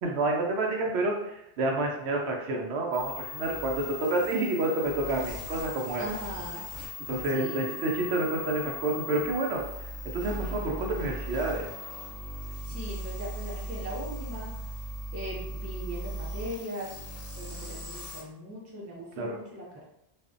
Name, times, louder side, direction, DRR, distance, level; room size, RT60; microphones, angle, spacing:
voice 1, 0.0-6.0 7.1-9.6 10.1-11.7 19.2-19.4, right 2 dB, 90° right, 0 dB, 0.8 m, -29 dB
sound 1, 2.9-18.2, left 1 dB, 40° left, 0.8 m, -38 dB
voice 2, 6.0-6.7 7.3-7.7 12.6-14.5 15.1-17.0 17.4-19.9, right 1 dB, 20° right, -4 dB, 0.4 m, -39 dB
2.4 x 2.1 x 2.4 m, 0.82 s
omnidirectional pair, 1.1 m